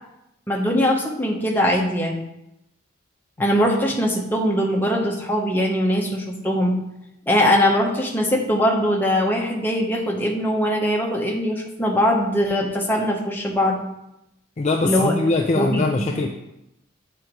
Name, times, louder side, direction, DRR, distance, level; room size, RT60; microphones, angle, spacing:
voice 1, 0.5-2.2 3.4-6.8 7.3-13.8 14.8-15.1 15.5-16.1, equal, 10° left, -1 dB, 0.9 m, -21 dB
voice 2, 14.6-16.3, left 3 dB, 30° left, 2 dB, 0.4 m, -22 dB
7.8 x 3.9 x 4.6 m, 0.86 s
head